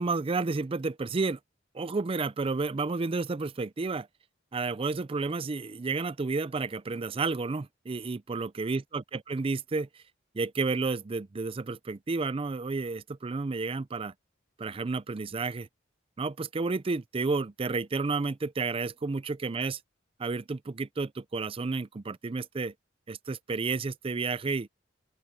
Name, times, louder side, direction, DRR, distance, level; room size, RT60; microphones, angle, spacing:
voice 1, 0.0-1.4 1.8-4.1 4.5-9.9 10.3-14.1 14.6-15.7 16.2-19.8 20.2-22.7 23.1-24.7, right 3 dB, 30° right, 0.4 m, -31 dB
open air
head